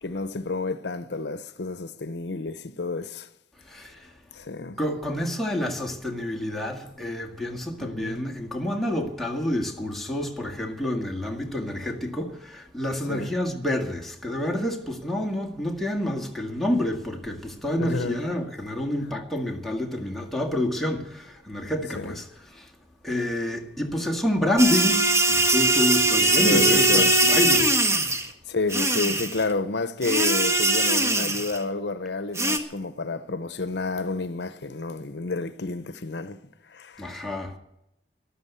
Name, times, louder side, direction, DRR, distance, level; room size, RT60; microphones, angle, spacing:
voice 1, 0.0-3.3 4.3-4.8 7.8-8.2 13.1-13.3 17.8-18.2 21.9-22.2 26.4-27.1 28.5-36.4 36.7-37.2, left 3 dB, 70° left, 0.7 m, -30 dB
voice 2, 3.6-4.1 4.8-22.7 23.0-27.8 37.0-37.5, left 1 dB, ahead, 2.0 m, -28 dB
sound 1, 24.6-28.3 28.7-29.4 30.0-31.6 32.4-32.6, right 2 dB, 15° right, 1.5 m, -21 dB
13.0 x 12.0 x 8.2 m
head